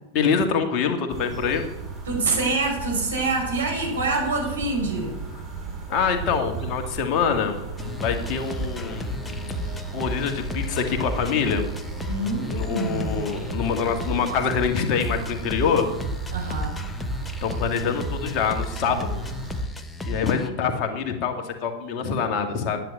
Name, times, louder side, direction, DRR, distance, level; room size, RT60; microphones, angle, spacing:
voice 1, 0.1-1.6 5.9-7.6 8.0-9.6 9.9-11.6 12.6-15.9 17.4-19.2 20.1-22.8, left 6 dB, 40° left, 5 dB, 2.0 m, -25 dB
sound 1, 1.1-19.6, right 4 dB, 20° right, 4.7 m, -36 dB
voice 2, 2.1-5.2 12.1-13.3 16.3-16.8, right 3 dB, 70° right, -1 dB, 5.8 m, -26 dB
sound 2, 7.8-20.5, left 2 dB, 10° left, 1.1 m, -33 dB
10.5 x 9.2 x 8.2 m, 0.97 s
figure-of-eight pair, 90°, 0 cm